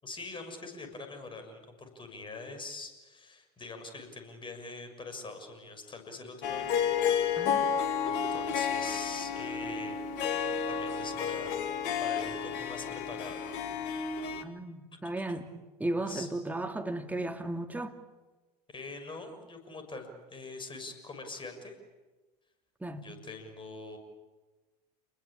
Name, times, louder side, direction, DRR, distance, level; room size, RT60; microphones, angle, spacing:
voice 1, 0.0-6.7 8.1-10.2 10.7-11.6 12.0-13.4 13.9-14.5 15.3-15.4 16.1-16.3 18.7-21.8 23.0-24.0, left 3 dB, 25° left, 6.6 m, -44 dB
Harp, 6.4-14.4, left 7 dB, 55° left, 2.5 m, -31 dB
voice 2, 7.4-7.7 14.4-15.5 15.8-18.0 22.8-23.1, right 2 dB, 10° right, 2.6 m, -35 dB
29.5 x 21.0 x 8.8 m
hypercardioid pair, 80°, 20 cm